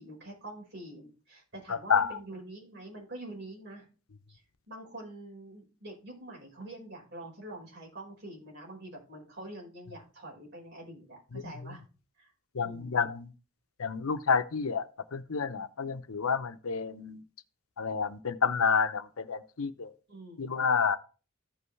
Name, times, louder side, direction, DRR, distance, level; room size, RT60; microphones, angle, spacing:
voice 1, 0.0-3.9 4.3-11.8 12.1-12.3 12.6-13.1 20.1-20.6, right 1 dB, 55° right, 4.8 m, -46 dB
voice 2, 12.5-13.3 13.8-14.9 15.1-17.2 17.8-19.9 20.4-21.0, left 6 dB, 85° left, 0.7 m, -29 dB
14.5 x 5.4 x 3.2 m
head